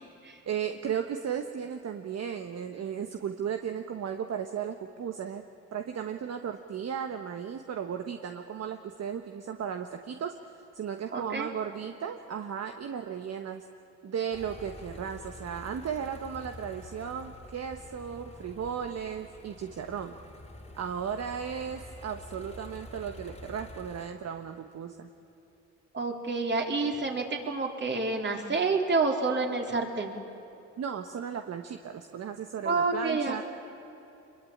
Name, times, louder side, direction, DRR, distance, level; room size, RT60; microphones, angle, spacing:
voice 1, 0.5-5.4 5.7-10.4 10.7-13.6 14.0-20.1 20.7-25.1 30.8-33.4, right 8 dB, 55° right, 6 dB, 1.4 m, -35 dB
voice 2, 11.1-11.5 25.9-30.1 32.6-33.4, right 3 dB, 35° right, 2 dB, 3.8 m, -28 dB
sound 1, 14.3-24.1, left 2 dB, 20° left, 2.7 m, -48 dB
25.5 x 22.5 x 8.8 m, 3.0 s
cardioid pair, 90°, 30 cm